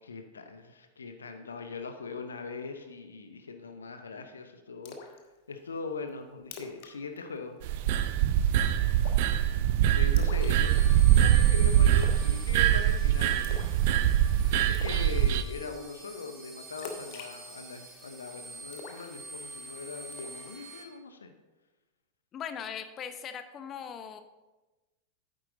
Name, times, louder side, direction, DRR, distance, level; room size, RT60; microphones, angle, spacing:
voice 1, 0.0-5.2 5.5-7.6 8.8-9.3 9.9-13.6 14.4-21.3, left 4 dB, 70° left, 7 dB, 0.7 m, -41 dB
Splash splatter, 4.9-5.2 5.6-5.7 6.1-6.2 6.4-6.9 7.2-7.4 7.7-8.1 9.0-9.3 10.2-11.0 12.0-12.3 12.5-12.9 13.4-13.8 14.1-14.2 14.7-15.0 16.8-18.1 18.7-19.6 20.1-20.4, left 5 dB, 50° left, 1.1 m, -44 dB
sound 1, 7.6-15.4, right 11 dB, 50° right, 0.5 m, -23 dB
sound 2, 10.4-20.8, right 2 dB, 15° right, 1.8 m, -47 dB
voice 2, 22.3-24.2, left 8 dB, 30° left, 9 dB, 0.7 m, -39 dB
9.0 x 7.8 x 3.8 m, 1.1 s
figure-of-eight pair, 90°, 0 cm